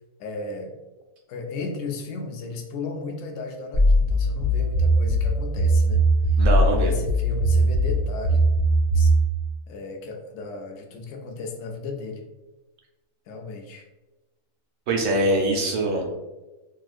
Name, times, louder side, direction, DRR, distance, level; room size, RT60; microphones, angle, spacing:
voice 1, 0.2-0.7 1.3-8.4 8.9-9.1 9.7-12.2 13.3-13.9, left 3 dB, 70° left, 3 dB, 0.9 m, -35 dB
sound 1, 3.7-9.2, right 1 dB, 35° left, 0.9 m, -19 dB
voice 2, 6.4-6.9 14.9-16.1, right 2 dB, 70° right, 0 dB, 1.0 m, -23 dB
3.7 x 2.4 x 2.4 m, 1.1 s
omnidirectional pair, 1.4 m